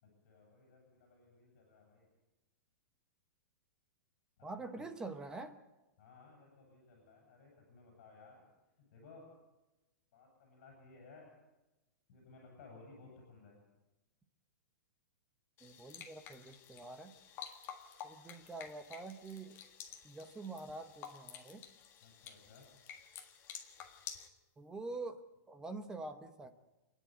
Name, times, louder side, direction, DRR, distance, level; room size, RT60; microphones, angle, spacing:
voice 1, 0.0-2.1 4.4-4.6 6.0-8.4 8.8-9.3 10.1-11.3 12.1-13.6 22.0-22.7, left 3 dB, 45° left, 0 dB, 7.7 m, -59 dB
voice 2, 4.4-5.5 15.6-17.1 18.0-19.6 20.0-21.6 24.6-25.2 25.5-26.5, right 3 dB, 5° right, 8 dB, 0.9 m, -45 dB
sound 1, 15.6-24.3, left 8 dB, 25° left, 1.7 m, -51 dB
28.0 x 10.0 x 9.3 m, 1.1 s
hypercardioid pair, 165°, 10 cm